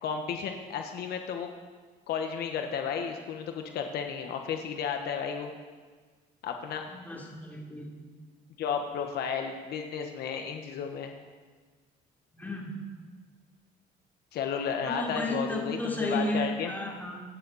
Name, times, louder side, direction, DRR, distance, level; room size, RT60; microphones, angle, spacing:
voice 1, 0.0-1.5 2.1-5.5 6.4-6.8 8.6-11.1 14.3-16.7, left 6 dB, 70° left, 4 dB, 1.3 m, -33 dB
voice 2, 6.9-7.9 12.3-12.8 14.8-17.2, left 1 dB, 10° left, -2 dB, 3.3 m, -33 dB
25.0 x 9.7 x 4.2 m, 1.5 s
cardioid pair, 110°, 17 cm